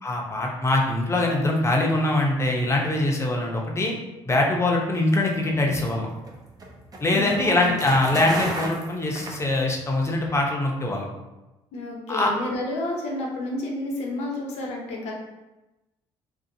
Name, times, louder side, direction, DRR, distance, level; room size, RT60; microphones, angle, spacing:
voice 1, 0.0-3.9 4.3-6.1 7.0-11.1 12.1-12.3, left 2 dB, 25° left, 0 dB, 0.6 m, -23 dB
sound 1, 5.5-10.0, right 1 dB, 35° right, 0.6 m, -34 dB
voice 2, 7.1-7.6 8.1-8.2 11.7-15.1, left 1 dB, 75° left, -1 dB, 0.7 m, -30 dB
2.6 x 2.3 x 2.6 m, 1.0 s
supercardioid pair, 80°, 11 cm